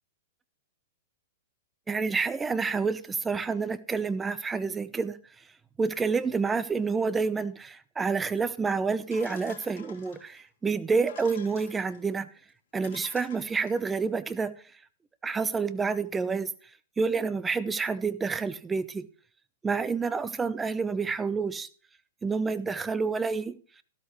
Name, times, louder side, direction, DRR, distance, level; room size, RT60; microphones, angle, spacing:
voice 1, 1.9-5.2 5.8-12.3 12.7-14.6 15.2-16.5 17.0-19.1 19.6-21.7 22.2-23.6, right 4 dB, 15° right, 14 dB, 0.8 m, -28 dB
sound 1, 9.1-10.4 11.0-12.0 12.5-12.6 12.8-14.0, left 8 dB, 60° left, 3.4 m, -50 dB
13.5 x 12.5 x 3.2 m, 0.42 s
hypercardioid pair, 110°, 0 cm